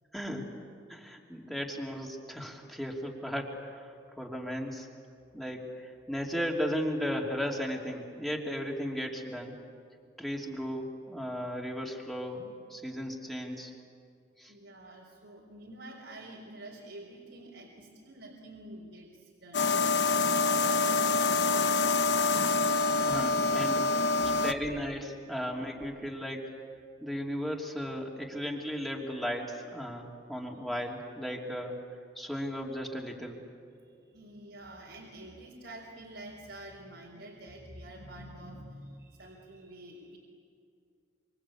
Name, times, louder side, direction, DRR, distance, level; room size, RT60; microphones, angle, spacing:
voice 1, 0.1-0.5 0.9-4.9 5.3-9.5 10.2-13.7 14.4-14.5 22.9-24.0 24.4-26.5 27.0-31.8 32.2-33.4, equal, ahead, -1 dB, 2.9 m, -35 dB
voice 2, 14.5-19.8 20.3-22.3 23.7-23.8 24.2-24.4 33.7-40.2, right 1 dB, 75° right, -1 dB, 4.1 m, -48 dB
sound 1, 19.5-24.5, left 3 dB, 65° left, 1.0 m, -26 dB
27.0 x 26.0 x 8.5 m, 2.3 s
head